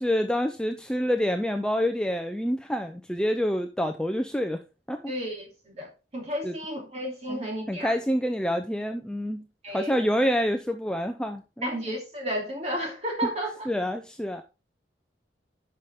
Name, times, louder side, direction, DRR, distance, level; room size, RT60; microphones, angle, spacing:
voice 1, 0.0-4.6 4.9-5.1 6.4-6.5 7.3-7.4 7.7-9.4 9.7-11.7 13.2-13.3 13.7-14.4, equal, 5° left, 0.5 m, -27 dB
voice 2, 5.1-8.0 9.6-10.1 11.6-13.7, equal, 35° right, 2.7 m, -32 dB
10.5 x 5.7 x 3.5 m
head